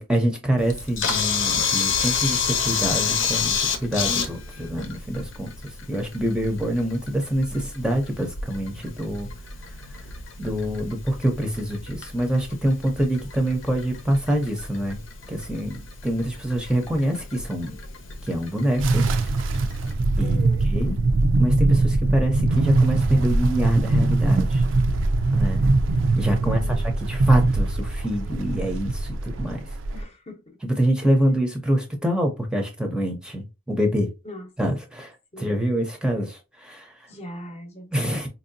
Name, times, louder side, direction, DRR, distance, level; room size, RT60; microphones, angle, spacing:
voice 1, 0.0-5.5 5.9-9.3 10.4-15.0 15.3-17.8 18.2-19.1 20.2-20.4 20.7-21.0 21.4-24.6 25.3-25.7 26.2-26.6 27.1-29.6 30.6-34.1 34.6-36.9 37.9-38.3, right 1 dB, 5° right, 0.7 m, -25 dB
Camera, 0.6-19.9, left 6 dB, 85° left, 0.9 m, -30 dB
sound 1, 18.8-30.0, right 2 dB, 70° right, 0.5 m, -22 dB
voice 2, 20.2-20.7 26.4-27.0 29.9-30.6 34.2-34.5 35.3-35.6 37.1-38.1, left 1 dB, 35° left, 0.8 m, -40 dB
4.3 x 2.7 x 2.6 m
head